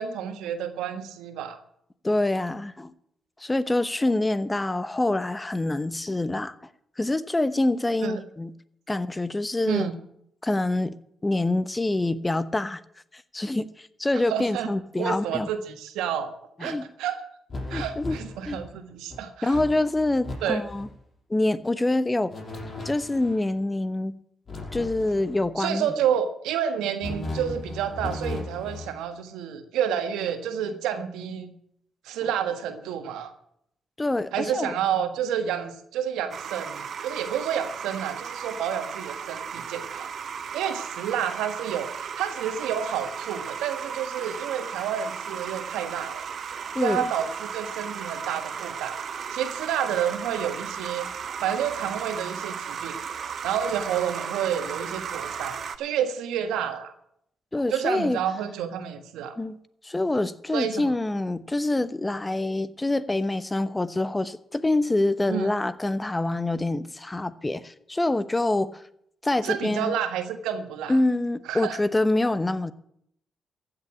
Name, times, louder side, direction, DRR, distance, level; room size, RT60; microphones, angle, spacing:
voice 1, 0.0-1.6 8.0-8.2 9.6-9.9 14.1-14.7 15.0-16.3 16.6-17.2 17.7-19.5 20.4-20.6 25.6-31.5 32.0-33.3 34.3-40.1 40.5-46.3 46.8-49.0 49.3-51.1 51.4-53.0 53.4-56.9 57.7-59.4 60.5-60.7 65.3-65.5 69.4-71.0 71.5-71.8, right 9 dB, 80° right, 1.5 m, -29 dB
voice 2, 2.0-2.9 3.4-6.5 7.0-8.5 8.9-9.9 10.4-10.9 11.2-12.8 13.1-15.5 16.6-16.9 17.7-18.2 18.5-18.6 19.4-20.9 21.3-22.3 22.8-24.2 24.7-25.9 34.0-34.8 46.7-47.1 57.5-58.2 59.4-59.6 59.8-68.8 69.2-70.0 70.9-72.7, left 2 dB, 20° left, 1.0 m, -26 dB
sound 1, 17.5-18.7 19.1-19.2 19.5-20.3 20.6-20.9 22.3-23.4 24.5-25.5 27.0-29.0, left 2 dB, 45° left, 5.6 m, -36 dB
sound 2, 36.3-55.8, right 7 dB, 60° right, 1.1 m, -35 dB
15.0 x 7.1 x 8.5 m
supercardioid pair, 50°, 0 cm